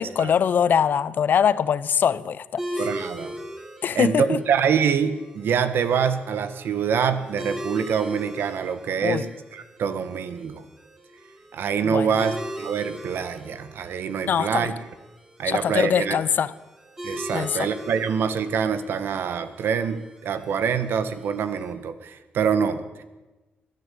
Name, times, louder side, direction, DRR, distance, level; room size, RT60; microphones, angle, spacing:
voice 1, 0.0-2.9 3.8-4.4 9.0-9.3 11.8-12.3 14.2-14.7 15.4-16.5 17.3-17.7, left 8 dB, 55° left, 0.9 m, -23 dB
sound 1, 2.6-21.7, equal, 10° right, 5.1 m, -40 dB
voice 2, 2.8-3.3 3.9-10.6 11.5-14.7 15.4-16.2 17.0-23.0, right 7 dB, 75° right, 1.7 m, -25 dB
22.5 x 14.0 x 8.7 m
wide cardioid pair, 140°, 4 cm